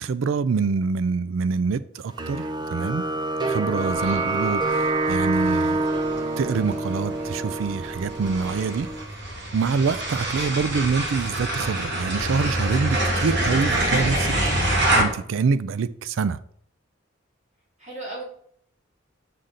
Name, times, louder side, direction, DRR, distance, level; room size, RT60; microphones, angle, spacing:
voice 1, 0.0-3.0 3.4-5.8 6.4-8.9 9.5-14.3 14.9-16.4, right 5 dB, 80° right, 0.4 m, -25 dB
sound 1, 2.2-9.0, right 2 dB, 20° right, 0.6 m, -27 dB
sound 2, 3.9-15.0, right 1 dB, 60° right, 1.9 m, -27 dB
voice 2, 17.8-18.2, right 2 dB, 35° right, 2.5 m, -36 dB
6.6 x 5.7 x 3.8 m
head